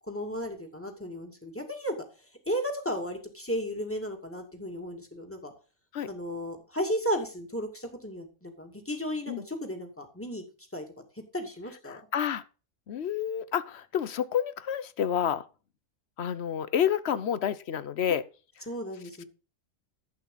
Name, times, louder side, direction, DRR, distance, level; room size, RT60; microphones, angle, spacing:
voice 1, 0.0-2.0 2.5-5.5 6.1-10.4 10.7-10.9 11.2-12.0 18.7-19.2, equal, 10° left, 2.4 m, -34 dB
voice 2, 11.9-12.4 12.9-15.4 16.2-18.2, left 9 dB, 60° left, 1.0 m, -29 dB
11.5 x 8.5 x 3.9 m
omnidirectional pair, 1.3 m